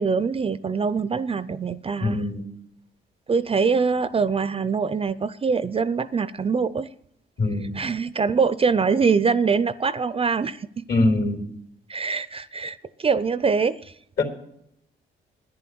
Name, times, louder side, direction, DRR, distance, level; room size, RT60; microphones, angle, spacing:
voice 1, 0.0-2.2 3.3-6.9 7.7-10.8 11.9-13.9, right 5 dB, 30° right, 0.5 m, -23 dB
voice 2, 2.0-2.4 7.4-7.8 10.9-11.4 14.2-14.3, left 2 dB, 60° left, 3.4 m, -23 dB
11.0 x 10.0 x 6.1 m
cardioid pair, 90°, 20 cm